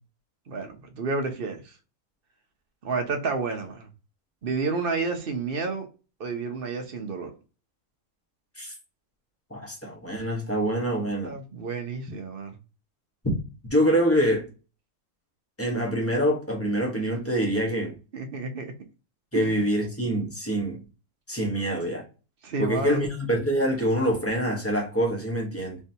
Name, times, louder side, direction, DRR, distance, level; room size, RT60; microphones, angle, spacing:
voice 1, 0.5-1.7 2.8-3.9 4.4-5.9 6.2-7.3 11.2-12.6 18.1-18.7 19.3-19.6 22.4-23.0, right 4 dB, 50° right, 0.9 m, -30 dB
voice 2, 9.5-11.3 13.2-13.3 13.7-14.5 15.6-17.9 19.3-20.8 21.3-22.1 22.6-25.8, equal, 10° left, 1.0 m, -25 dB
3.9 x 3.4 x 2.8 m
omnidirectional pair, 1.5 m